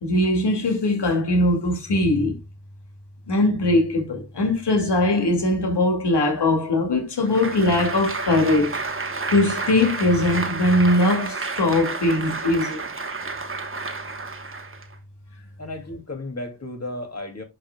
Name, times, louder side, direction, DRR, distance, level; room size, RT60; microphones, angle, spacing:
voice 1, 0.0-2.4 3.3-8.8 9.3-12.8, left 1 dB, 75° left, 2.6 m, -21 dB
Applause, 7.2-14.9, right 3 dB, 30° right, 1.1 m, -31 dB
voice 2, 15.6-17.4, left 2 dB, 35° left, 2.7 m, -34 dB
11.0 x 5.5 x 2.3 m
wide cardioid pair, 100°, 42 cm